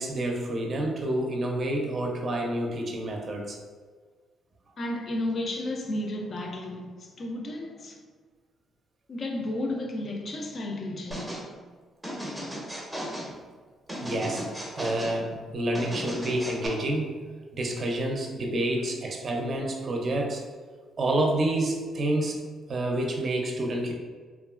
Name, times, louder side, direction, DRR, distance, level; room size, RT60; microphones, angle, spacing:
voice 1, 0.0-3.6 13.3-13.4 14.0-14.5 14.8-17.2 17.5-20.4 21.0-23.9, right 1 dB, 45° right, 0.5 m, -28 dB
voice 2, 4.8-8.0 9.1-11.4, left 1 dB, 45° left, 0.4 m, -33 dB
sound 1, 11.1-11.5 12.0-13.3 13.9-15.2 15.7-16.7, equal, 5° right, 0.6 m, -36 dB
2.9 x 2.3 x 2.4 m
cardioid pair, 90°, 0 cm